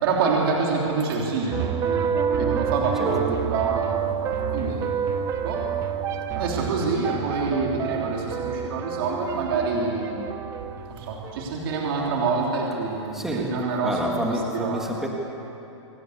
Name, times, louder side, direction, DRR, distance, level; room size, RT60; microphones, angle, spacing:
voice 1, 0.0-4.9 5.4-5.6 6.3-10.3 10.9-14.9, right 4 dB, 50° right, -2 dB, 3.5 m, -27 dB
sound 1, 1.5-11.7, right 7 dB, 20° right, 0.8 m, -28 dB
voice 2, 13.1-13.6 13.8-15.1, right 1 dB, 5° right, 0 dB, 1.7 m, -28 dB
26.0 x 14.0 x 8.2 m, 2.9 s
hypercardioid pair, 160°, 16 cm